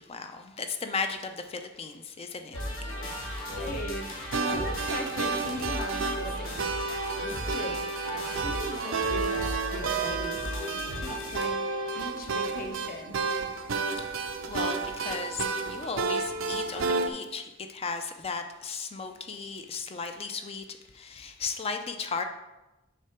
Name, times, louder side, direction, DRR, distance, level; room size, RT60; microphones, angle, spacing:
voice 1, 0.0-2.6 14.0-20.6 20.9-22.2, left 4 dB, 30° left, 6 dB, 0.4 m, -36 dB
sound 1, 2.5-12.0, left 1 dB, 90° left, 1.5 m, -36 dB
voice 2, 3.5-6.5 7.2-7.9 8.4-9.3 9.7-10.5 11.0-11.5 11.9-13.2, left 1 dB, 45° left, 3 dB, 0.8 m, -39 dB
sound 2, 4.3-17.1, right 4 dB, 70° right, 0.5 m, -31 dB
6.6 x 3.7 x 4.4 m, 0.99 s
head